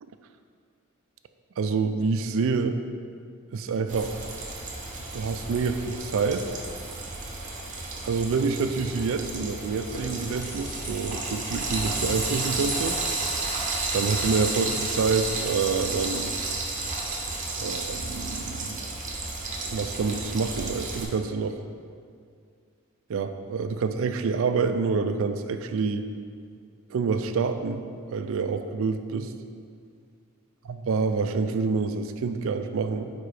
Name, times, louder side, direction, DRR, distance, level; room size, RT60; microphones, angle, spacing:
voice 1, 1.6-2.8 3.5-4.2 5.1-6.5 8.0-13.0 13.9-16.4 17.6-18.8 19.6-21.6 23.1-26.1 26.9-27.8 28.1-29.3 30.6-33.1, right 4 dB, 65° right, 9 dB, 0.4 m, -27 dB
Frying (food), 3.9-21.0, right 3 dB, 35° right, 0.8 m, -32 dB
sound 1, 9.6-15.6, left 1 dB, 40° left, 1.0 m, -40 dB
4.7 x 4.3 x 4.9 m, 2.2 s
head